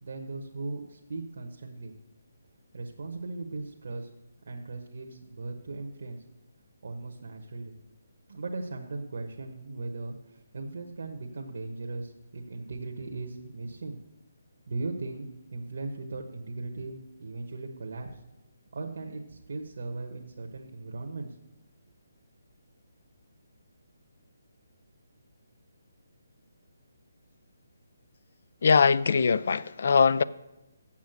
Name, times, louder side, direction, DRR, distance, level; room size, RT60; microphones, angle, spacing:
voice 1, 0.0-1.9 2.7-4.1 4.4-6.2 6.8-7.7 8.3-14.0 14.7-18.2 18.7-21.4, right 3 dB, 65° right, 1.2 m, -38 dB
voice 2, 28.6-30.2, left 5 dB, 55° left, 0.4 m, -21 dB
7.3 x 6.9 x 7.8 m
hypercardioid pair, 160°, 0 cm